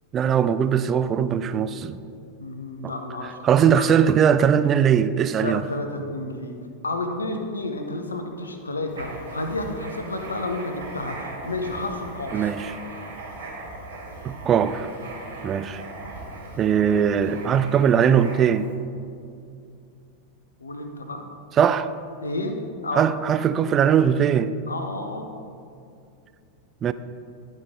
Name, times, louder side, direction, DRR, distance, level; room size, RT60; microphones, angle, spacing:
voice 1, 0.1-2.0 2.8-2.9 3.4-5.6 12.3-12.7 14.2-14.9 15.4-15.8 16.6-18.7 21.6-21.9 22.9-24.5 26.8-26.9, right 8 dB, 25° right, 0.3 m, -20 dB
voice 2, 2.4-3.4 3.8-3.9 5.4-6.5 6.8-12.5 20.6-21.2 22.2-22.6 22.8-23.1 24.7-25.3, left 2 dB, 75° left, 0.8 m, -31 dB
Writing, 8.9-18.7, right 2 dB, 65° right, 1.5 m, -39 dB
11.5 x 5.2 x 3.7 m
figure-of-eight pair, 90°, 0 cm